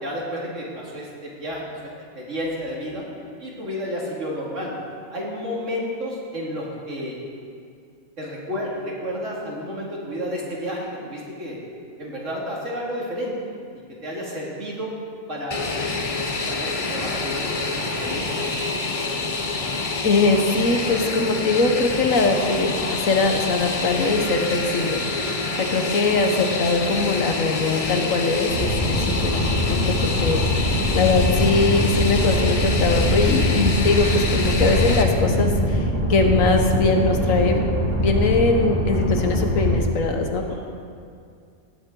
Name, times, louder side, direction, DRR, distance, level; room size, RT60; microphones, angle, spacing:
voice 1, 0.0-1.6 2.1-3.0 3.4-4.7 5.1-7.2 8.2-11.6 12.0-13.4 14.0-14.9 15.3-15.7 16.5-18.3 40.5-40.6, equal, 65° right, -4 dB, 2.6 m, -31 dB
Fixed-wing aircraft airplane, 15.5-35.0, left 3 dB, 35° left, 0.7 m, -27 dB
voice 2, 20.0-25.0 25.6-30.4 30.9-35.8 36.1-37.7 38.0-40.5, left 3 dB, 75° left, 4 dB, 1.5 m, -21 dB
sound 1, 28.5-39.8, left 1 dB, 40° right, 2.3 m, -22 dB
18.5 x 8.5 x 3.8 m, 2.3 s
omnidirectional pair, 1.4 m